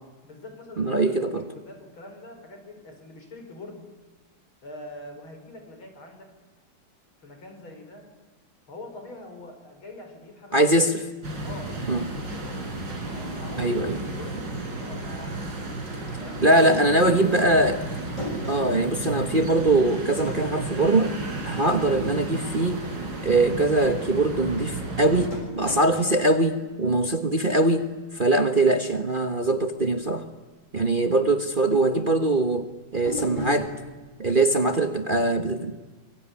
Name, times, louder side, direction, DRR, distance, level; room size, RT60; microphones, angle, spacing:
voice 1, 0.2-3.9 4.6-6.3 7.2-8.1 8.7-10.7 11.4-12.9 13.1-17.4 34.6-35.0, left 1 dB, 80° left, 5 dB, 6.1 m, -44 dB
voice 2, 0.8-1.4 10.5-11.0 11.9-12.0 13.6-14.0 16.4-17.8 18.5-21.1 21.4-22.8 23.2-30.2 30.7-33.7 34.2-35.7, right 2 dB, 30° right, 7 dB, 1.3 m, -22 dB
sound 1, 11.2-25.3, right 2 dB, 60° right, 5.0 m, -33 dB
sound 2, 17.7-20.3 20.6-20.7 25.3-27.8 33.0-33.9, equal, 35° left, 7.0 m, -37 dB
25.5 x 23.5 x 9.8 m, 1.3 s
omnidirectional pair, 2.2 m